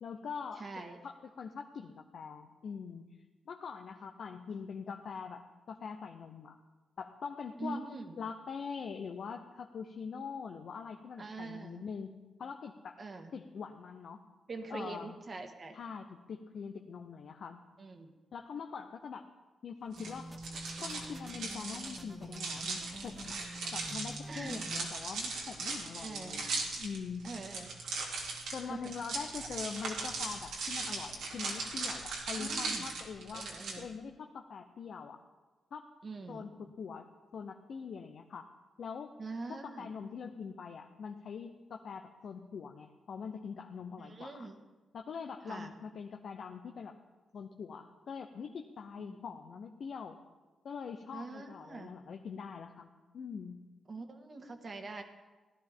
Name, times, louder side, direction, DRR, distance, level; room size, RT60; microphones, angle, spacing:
voice 1, 0.0-0.7 1.0-3.1 3.5-5.4 5.7-6.6 7.0-7.9 8.2-12.1 12.4-13.0 13.3-14.2 14.7-15.2 15.7-17.6 18.3-19.2 19.6-20.3 20.8-23.4 23.7-27.2 28.5-33.5 33.8-35.2 35.7-35.9 36.3-37.1 37.3-38.5 38.8-39.1 39.5-44.5 44.9-46.9 47.3-50.2 50.6-52.9 53.1-53.6, left 6 dB, 65° left, 4 dB, 0.8 m, -43 dB
voice 2, 0.6-1.0 7.6-8.2 11.2-11.8 13.0-13.3 14.5-15.8 17.8-18.1 24.3-24.7 26.0-26.5 27.2-27.7 28.7-28.9 32.3-32.9 33.3-33.9 36.0-36.5 39.2-39.9 44.0-44.6 45.5-45.7 49.1-49.2 51.1-51.9 53.9-55.0, right 3 dB, 45° right, 5 dB, 1.7 m, -44 dB
sound 1, 19.9-33.7, right 3 dB, 90° right, 2.6 m, -39 dB
sound 2, 20.0-25.0, right 1 dB, 10° right, 0.8 m, -47 dB
17.0 x 11.5 x 3.7 m, 1.2 s
cardioid pair, 70°, 0 cm